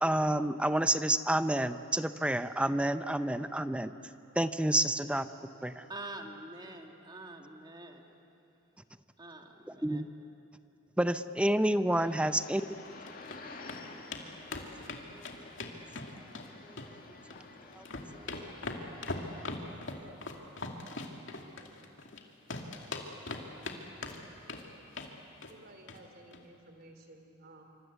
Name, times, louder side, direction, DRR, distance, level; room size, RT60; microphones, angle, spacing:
voice 1, 0.0-3.9 4.4-5.3 5.6-5.8 9.8-10.1 11.0-12.6 13.6-13.8 17.7-17.8, right 1 dB, 5° right, 11 dB, 0.6 m, -29 dB
voice 2, 5.9-8.0 9.2-10.0, right 2 dB, 20° right, 3 dB, 2.2 m, -45 dB
sound 1, 11.8-19.5, left 3 dB, 45° left, 2.2 m, -51 dB
sound 2, 12.8-13.4 13.7-13.8 14.1-14.2 14.5-16.5 16.8-17.4 17.7-22.2 22.5-23.8 24.0-24.6 24.9-25.1 25.4-25.6 25.9-26.0 26.3-26.4, left 3 dB, 70° left, 2.4 m, -40 dB
voice 3, 25.5-27.6, right 2 dB, 55° right, 5 dB, 3.4 m, -54 dB
27.0 x 25.0 x 8.3 m, 2.7 s
head